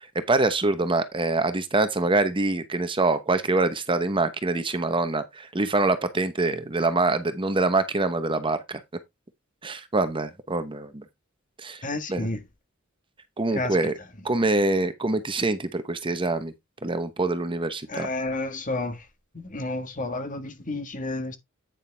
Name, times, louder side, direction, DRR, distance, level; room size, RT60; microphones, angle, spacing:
voice 1, 0.1-8.8 9.6-11.0 11.6-11.8 12.1-12.3 13.4-13.9 14.2-16.5 16.8-18.1, right 2 dB, 25° right, 0.9 m, -25 dB
voice 2, 11.8-12.4 13.5-13.7 17.9-19.0 19.3-21.4, left 2 dB, 40° left, 1.6 m, -30 dB
9.3 x 6.5 x 3.4 m
head